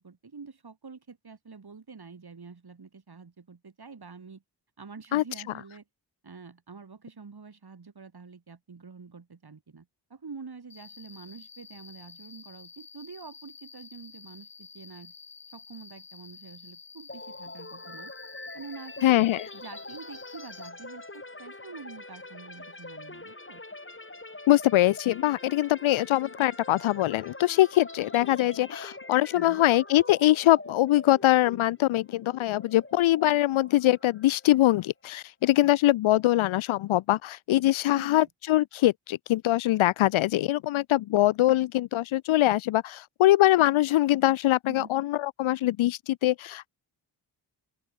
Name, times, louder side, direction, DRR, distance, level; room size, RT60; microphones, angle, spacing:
voice 1, 0.0-4.4 4.8-5.8 6.2-15.1 15.5-18.1 18.5-19.1 19.5-23.6 29.3-29.7 35.6-35.7 37.9-38.3 44.7-44.9, right 5 dB, 50° right, 6.7 m, -46 dB
Cricket, 10.7-20.7, left 5 dB, 55° left, 6.0 m, -50 dB
sound 1, 17.1-34.8, left 2 dB, 25° left, 7.1 m, -44 dB
voice 2, 19.0-19.5 24.5-46.7, left 15 dB, 75° left, 0.6 m, -23 dB
open air
supercardioid pair, 40°, 49 cm